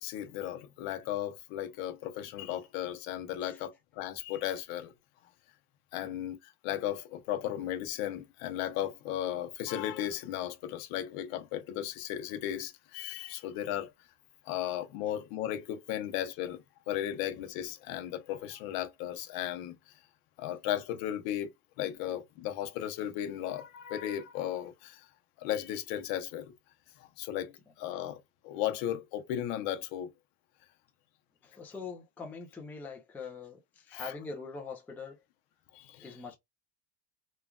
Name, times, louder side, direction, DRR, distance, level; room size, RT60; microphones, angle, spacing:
voice 1, 0.0-4.9 5.9-13.9 14.5-19.8 20.4-21.5 21.8-25.1 25.4-26.5 27.2-30.1 33.9-34.1 35.7-36.1, left 11 dB, 60° left, 0.7 m, -35 dB
voice 2, 31.4-35.2 36.0-36.4, left 4 dB, 5° left, 0.4 m, -43 dB
3.1 x 2.4 x 2.2 m
cardioid pair, 155°, 41 cm